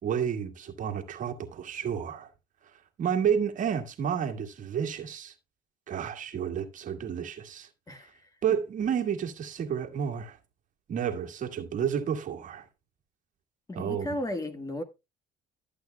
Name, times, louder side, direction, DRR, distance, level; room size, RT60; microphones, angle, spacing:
voice 1, 0.0-2.3 2.7-5.3 5.9-7.7 8.4-10.4 10.9-12.7 13.7-14.1, right 8 dB, 50° right, 1.8 m, -31 dB
voice 2, 7.9-8.3 13.7-14.8, left 1 dB, 20° left, 1.6 m, -34 dB
13.0 x 8.4 x 2.3 m
cardioid pair, 110°, 17 cm